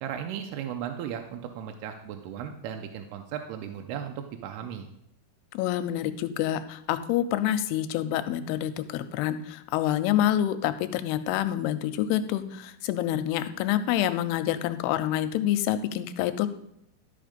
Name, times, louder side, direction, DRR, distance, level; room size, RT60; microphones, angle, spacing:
voice 1, 0.0-4.9, right 9 dB, 85° right, 5 dB, 2.6 m, -36 dB
voice 2, 5.5-16.5, left 12 dB, 90° left, 12 dB, 2.6 m, -27 dB
12.5 x 5.3 x 5.1 m, 0.75 s
omnidirectional pair, 4.6 m